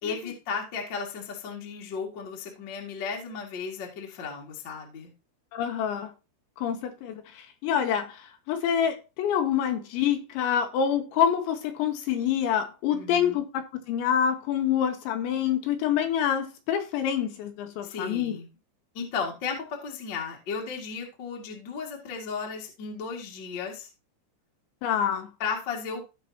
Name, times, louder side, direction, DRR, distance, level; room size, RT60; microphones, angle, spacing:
voice 1, 0.0-5.1 12.9-13.4 17.8-18.5 18.9-23.9 25.4-26.0, left 5 dB, 45° left, 1.4 m, -35 dB
voice 2, 5.5-6.1 6.6-18.4 24.8-25.3, left 9 dB, 80° left, 3.0 m, -27 dB
15.5 x 5.4 x 2.8 m
omnidirectional pair, 5.6 m